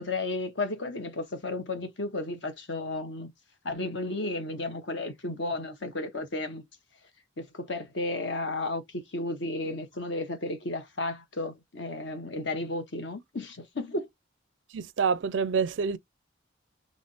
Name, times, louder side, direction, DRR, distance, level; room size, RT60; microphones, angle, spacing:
voice 1, 0.0-3.3 3.6-6.6 7.4-14.1, left 2 dB, 65° left, 1.1 m, -33 dB
voice 2, 14.7-16.0, right 5 dB, 70° right, 0.4 m, -27 dB
3.4 x 3.1 x 4.1 m
head